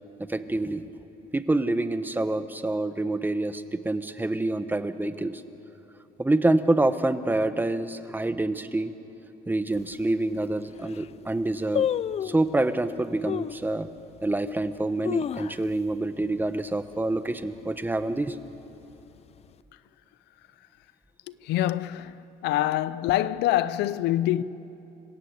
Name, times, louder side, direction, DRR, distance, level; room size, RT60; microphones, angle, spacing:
voice 1, 0.3-1.0 1.3-5.4 6.2-8.9 9.5-11.9 12.2-13.9 14.2-18.4, right 2 dB, 10° right, 1.0 m, -27 dB
sound 1, 9.7-9.8 10.4-10.5 10.7-11.1 11.7-12.5 13.2-13.6 14.2-14.3 14.8-15.9 16.2-16.3 16.6-17.0 17.4-17.8 18.4-19.2 19.4-19.5, left 9 dB, 40° left, 0.4 m, -30 dB
voice 2, 21.3-22.2 22.4-24.4, left 14 dB, 85° left, 0.6 m, -25 dB
27.0 x 16.5 x 8.2 m
cardioid pair, 110°, 17 cm